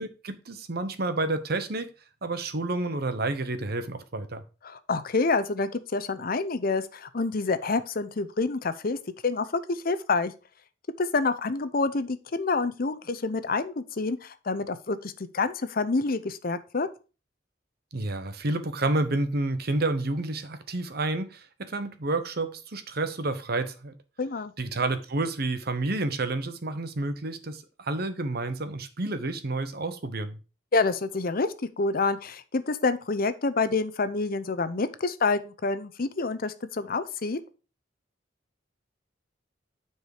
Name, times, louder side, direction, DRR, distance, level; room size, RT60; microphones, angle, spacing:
voice 1, 0.0-1.9 2.2-4.4 17.9-23.9 24.6-30.4, right 2 dB, 60° right, 1.0 m, -30 dB
voice 2, 4.6-9.0 9.2-10.3 11.0-16.9 24.2-24.5 30.7-37.4, left 3 dB, 55° left, 0.7 m, -27 dB
9.6 x 4.7 x 4.8 m
head